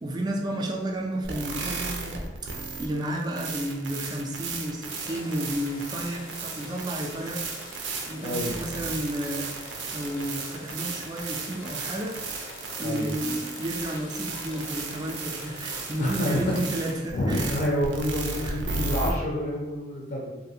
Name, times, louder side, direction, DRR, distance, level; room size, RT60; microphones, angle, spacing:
voice 1, 0.0-2.5 2.8-7.5 8.1-9.5 9.9-12.2 12.8-17.5 18.4-18.6, right 1 dB, 25° right, 1 dB, 0.3 m, -32 dB
sound 1, 1.2-19.1, right 4 dB, 85° right, 0.4 m, -35 dB
sound 2, 4.9-17.0, left 1 dB, 90° left, 0.7 m, -44 dB
voice 2, 8.2-8.5 12.8-13.1 16.0-16.6 17.1-20.4, equal, 60° left, -3 dB, 0.5 m, -28 dB
2.6 x 2.4 x 2.7 m, 1.1 s
head